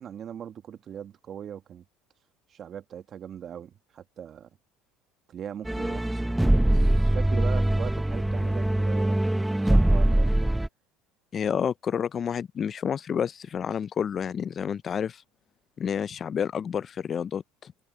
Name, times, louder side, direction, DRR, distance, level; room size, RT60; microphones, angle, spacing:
voice 1, 0.0-1.8 2.5-4.5 5.3-10.6, right 9 dB, 45° right, 1.7 m, -40 dB
sound 1, 5.7-10.7, right 1 dB, 5° right, 0.6 m, -23 dB
voice 2, 11.3-15.2 15.8-17.7, left 7 dB, 35° left, 0.3 m, -29 dB
supercardioid pair, 105°, 0 cm